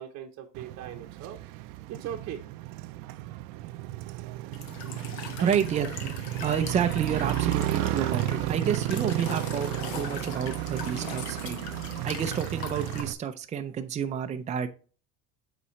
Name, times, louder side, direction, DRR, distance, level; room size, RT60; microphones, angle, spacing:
voice 1, 0.0-1.4 1.9-2.4 5.4-5.5, right 10 dB, 50° right, 1 dB, 0.9 m, -39 dB
Motorcycle, 0.6-13.1, right 15 dB, 75° right, 0.6 m, -33 dB
Walk footsteps / Chirp tweet / Stream, 4.5-13.0, left 6 dB, 60° left, 1.4 m, -41 dB
voice 2, 5.4-11.6 12.0-14.7, right 8 dB, 20° right, 6 dB, 0.5 m, -30 dB
8.3 x 4.2 x 3.1 m, 0.37 s
cardioid pair, 140°, 32 cm